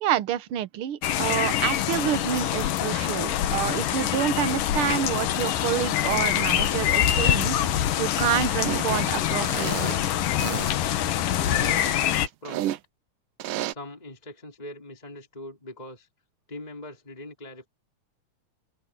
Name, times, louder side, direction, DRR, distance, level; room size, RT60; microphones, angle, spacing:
voice 1, 0.0-10.0, right 10 dB, 60° right, 1.4 m, -28 dB
sound 1, 1.0-12.3, left 11 dB, 85° left, 2.9 m, -25 dB
sound 2, 8.6-8.9 9.4-10.0 10.4-10.7 11.4-12.8 13.4-13.7, right 14 dB, 90° right, 2.3 m, -32 dB
voice 2, 11.3-12.8 13.7-16.1 16.5-17.7, left 1 dB, 10° left, 3.4 m, -41 dB
omnidirectional pair, 3.7 m